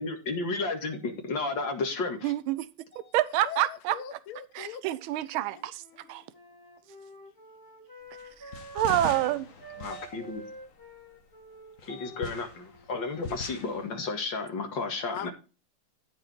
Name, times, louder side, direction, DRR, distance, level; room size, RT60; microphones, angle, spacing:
voice 1, 0.0-2.3 2.9-3.1 9.8-10.4 11.9-15.3, left 3 dB, 60° left, 2.6 m, -33 dB
voice 2, 2.2-2.7 3.1-4.0 4.5-5.8 6.1-6.2 8.7-9.5, right 14 dB, 80° right, 1.5 m, -27 dB
voice 3, 3.4-4.8 5.5-5.6 15.1-15.3, left 9 dB, 85° left, 1.7 m, -40 dB
Wind instrument woodwind instrument, 5.3-9.3 9.6-14.1, right 1 dB, 10° left, 1.9 m, -49 dB
sound 1, 8.2-11.2 11.8-13.9, left 5 dB, 40° left, 1.6 m, -41 dB
14.0 x 4.9 x 4.4 m
omnidirectional pair, 2.3 m